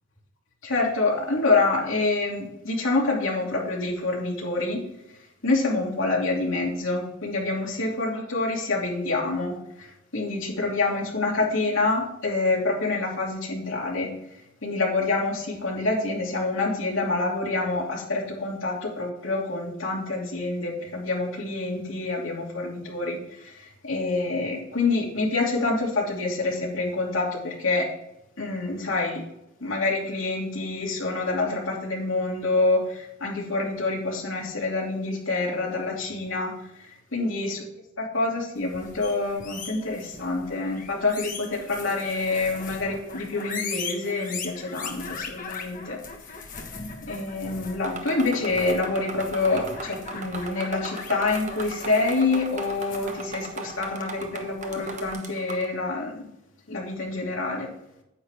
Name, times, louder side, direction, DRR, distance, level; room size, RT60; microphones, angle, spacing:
voice 1, 0.6-4.8 5.4-14.1 14.6-27.9 28.4-29.2 29.6-36.5 36.8-37.6 38.0-46.0 47.0-56.3 56.7-57.7, left 3 dB, 80° left, -2 dB, 2.7 m, -27 dB
sound 1, 38.6-55.1, left 5 dB, 45° left, 1.3 m, -39 dB
sound 2, 47.8-55.7, right 2 dB, 40° right, 1.1 m, -38 dB
9.6 x 8.3 x 3.5 m, 0.85 s
head